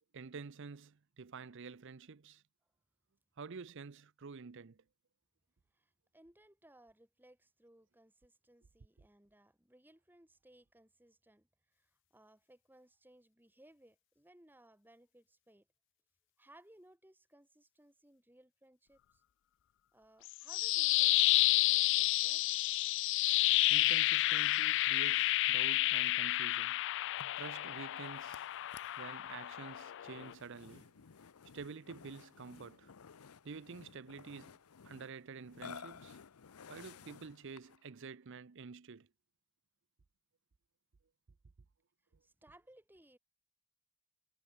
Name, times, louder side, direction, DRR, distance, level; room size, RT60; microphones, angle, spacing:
voice 1, 0.1-2.4 3.4-4.8 21.6-21.7 23.7-28.6 29.0-30.9 31.5-32.9 33.4-34.6 34.8-36.2 36.7-39.1, right 5 dB, 55° right, 0.6 m, -49 dB
voice 2, 5.7-15.7 16.4-19.2 19.9-22.5 23.5-23.6 42.0-43.2, right 1 dB, 10° right, 2.0 m, -63 dB
sound 1, 20.2-30.3, left 17 dB, 55° left, 0.3 m, -30 dB
Burping eructation, 27.2-37.9, left 6 dB, 90° left, 0.7 m, -55 dB
head